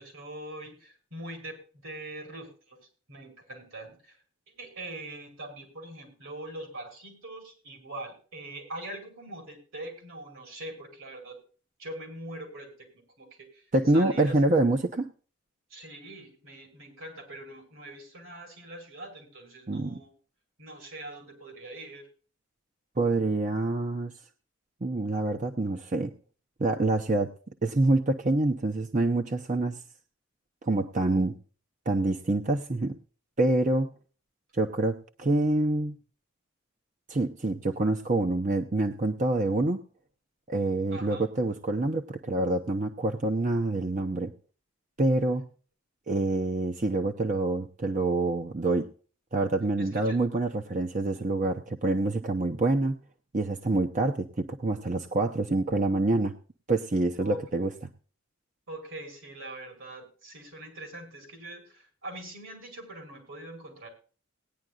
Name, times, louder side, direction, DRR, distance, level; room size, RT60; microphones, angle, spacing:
voice 1, 0.0-4.2 4.5-11.4 11.8-13.6 13.9-14.3 15.7-20.1 20.6-22.1 40.9-41.3 49.8-50.2 57.2-57.4 58.7-63.9, right 1 dB, 85° right, 3 dB, 5.3 m, -43 dB
voice 2, 13.7-15.1 19.7-20.0 23.0-24.1 24.8-26.1 26.6-27.3 27.6-29.8 30.6-31.4 31.9-33.0 33.4-33.9 34.5-36.0 37.1-39.8 40.5-44.3 45.0-45.5 46.1-48.9 49.3-53.0 53.3-56.3 56.7-57.7, right 2 dB, 40° right, 4 dB, 0.7 m, -26 dB
19.0 x 10.0 x 2.4 m, 0.38 s
head